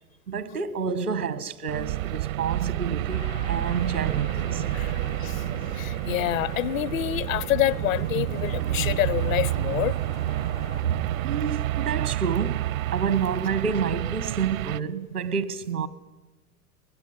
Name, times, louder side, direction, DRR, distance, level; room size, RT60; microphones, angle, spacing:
voice 1, 0.3-4.6 10.8-15.9, right 6 dB, 85° right, 1.4 m, -29 dB
sound 1, 1.7-14.8, right 15 dB, 65° right, 0.7 m, -29 dB
sound 2, 3.1-10.8, left 5 dB, 90° left, 4.1 m, -42 dB
voice 2, 4.5-4.9 5.2-5.4 5.8-9.9, left 14 dB, 60° left, 0.9 m, -27 dB
22.5 x 20.0 x 9.7 m
figure-of-eight pair, 90°, 44 cm